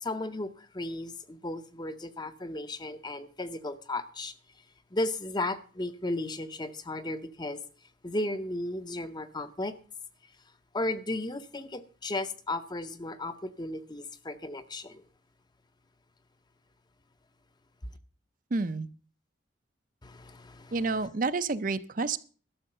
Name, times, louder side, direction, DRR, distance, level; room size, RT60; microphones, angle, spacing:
voice 1, 0.0-4.3 4.9-7.6 8.0-9.7 10.7-15.0 20.0-21.1, left 2 dB, 20° left, 0.7 m, -35 dB
voice 2, 18.5-18.9 20.7-22.2, right 3 dB, 45° right, 0.6 m, -29 dB
12.5 x 6.4 x 7.7 m
head